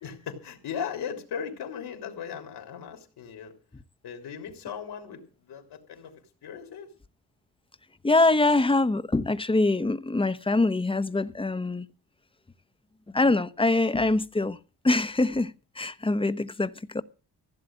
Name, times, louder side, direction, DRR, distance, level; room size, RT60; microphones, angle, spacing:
voice 1, 0.0-3.5 4.0-6.1 6.4-6.9, left 7 dB, 80° left, 3.3 m, -37 dB
voice 2, 8.0-11.9 13.1-14.6 14.8-17.0, left 2 dB, 15° left, 0.9 m, -24 dB
15.5 x 7.6 x 7.5 m
cardioid pair, 75°, 40 cm